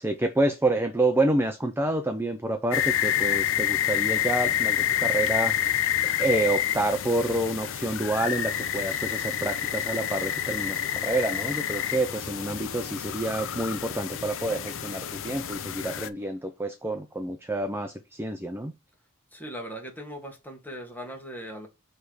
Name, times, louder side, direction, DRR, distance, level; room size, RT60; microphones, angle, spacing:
voice 1, 0.0-5.9 6.2-18.7, right 2 dB, 10° right, 0.6 m, -28 dB
sound 1, 2.7-16.1, left 10 dB, 60° left, 0.6 m, -28 dB
voice 2, 19.3-21.7, equal, 10° left, 1.7 m, -39 dB
6.6 x 3.4 x 4.8 m
head